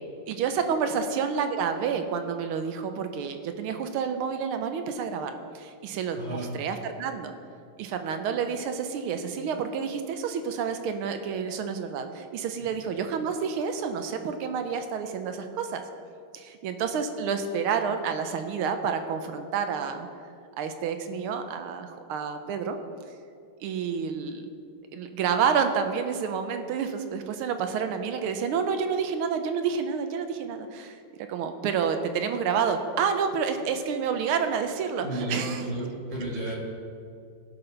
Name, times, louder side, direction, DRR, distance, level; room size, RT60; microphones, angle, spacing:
voice 1, 0.3-7.3 7.8-15.8 16.3-20.1 20.6-22.8 23.6-24.5 24.9-31.0 31.3-35.7, right 6 dB, 80° right, 7 dB, 1.6 m, -29 dB
voice 2, 6.1-6.5 35.0-36.6, right 1 dB, 65° right, -3 dB, 2.7 m, -32 dB
16.0 x 6.0 x 3.9 m, 2.3 s
omnidirectional pair, 2.4 m